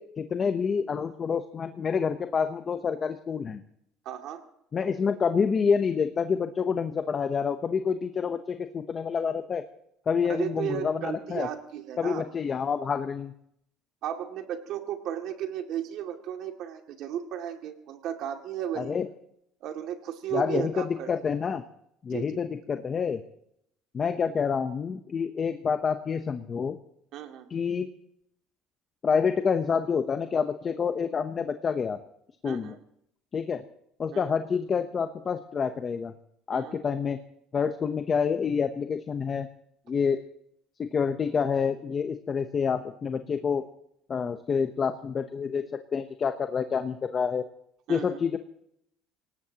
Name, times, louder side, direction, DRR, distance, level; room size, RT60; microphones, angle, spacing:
voice 1, 0.0-3.6 4.7-9.6 10.1-11.5 12.0-13.3 18.8-19.1 20.3-21.6 22.0-23.2 23.9-26.8 27.5-27.9 29.0-32.0 32.4-32.8 33.3-33.6 34.0-36.1 36.5-37.2 37.5-39.5 39.9-40.2 40.8-43.6 44.1-47.4 47.9-48.4, left 6 dB, 30° left, 8 dB, 0.8 m, -28 dB
voice 2, 4.1-4.4 10.3-12.2 14.0-18.9 19.6-21.1 22.1-22.4 27.1-27.5 32.4-32.8 34.1-34.3 36.5-36.8 47.9-48.2, right 10 dB, 60° right, 4 dB, 2.3 m, -35 dB
24.5 x 18.5 x 2.9 m, 0.73 s
cardioid pair, 135°, 0 cm